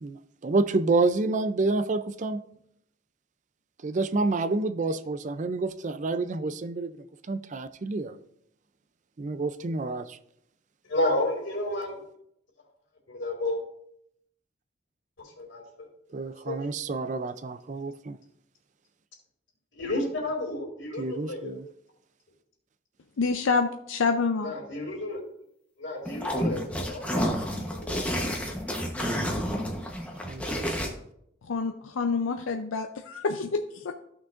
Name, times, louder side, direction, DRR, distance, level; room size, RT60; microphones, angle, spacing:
voice 1, 0.0-2.4 3.8-7.0 7.3-8.1 9.2-10.2 16.1-18.2 21.0-21.7 30.3-30.9, right 3 dB, 40° right, 0.4 m, -28 dB
voice 2, 10.9-12.0 13.1-13.6 15.4-15.9 16.5-16.6 19.7-21.5 24.4-25.2 25.8-27.3 27.7-28.1, left 1 dB, 70° left, 2.5 m, -31 dB
voice 3, 23.2-24.5 31.5-34.0, left 4 dB, 85° left, 0.5 m, -27 dB
sound 1, 26.1-30.9, equal, 5° left, 1.0 m, -30 dB
14.0 x 6.0 x 2.5 m
head